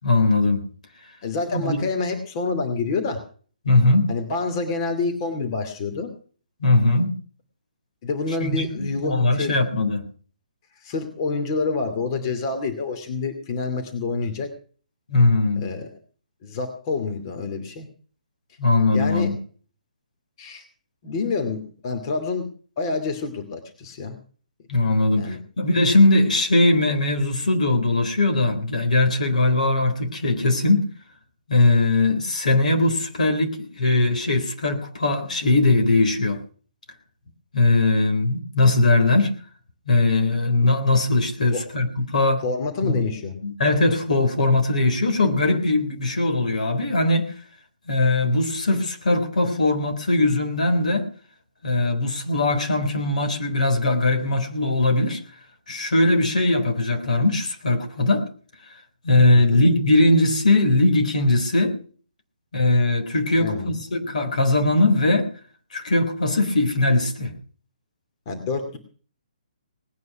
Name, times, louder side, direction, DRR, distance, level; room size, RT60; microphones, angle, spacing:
voice 1, 0.0-0.6 1.5-1.9 3.6-4.1 6.6-7.1 8.4-10.0 15.1-15.7 18.6-19.4 24.7-30.9 31.5-36.4 37.5-39.3 39.9-42.4 42.8-43.0 43.4-47.3 47.9-51.1 51.6-55.2 55.7-58.3 59.0-61.8 62.5-65.3 65.7-67.3, left 2 dB, 65° left, 5 dB, 3.8 m, -20 dB
voice 2, 1.2-3.2 4.1-6.1 8.0-9.8 10.8-14.5 15.6-15.9 16.4-17.9 18.9-19.4 20.4-20.6 21.0-22.5 22.8-24.2 25.2-25.4 41.5-41.6 42.4-43.4 59.3-59.6 63.4-63.8 68.3-68.8, left 4 dB, 35° left, 6 dB, 2.7 m, -27 dB
19.0 x 9.5 x 5.9 m, 0.43 s
figure-of-eight pair, 135°, 4 cm